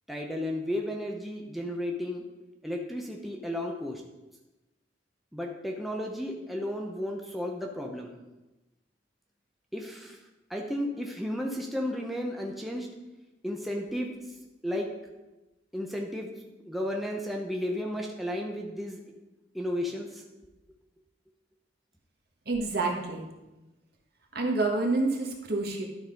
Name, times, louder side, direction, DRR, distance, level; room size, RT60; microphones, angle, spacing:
voice 1, 0.1-2.2 2.6-4.0 5.3-8.1 9.7-10.2 10.5-12.9 13.4-14.1 14.6-14.9 15.7-16.3 16.6-19.0 19.5-20.2, left 1 dB, ahead, 0 dB, 0.6 m, -33 dB
voice 2, 22.5-23.3 24.3-25.8, right 3 dB, 55° right, 1 dB, 1.4 m, -28 dB
11.5 x 4.0 x 5.2 m, 1.1 s
head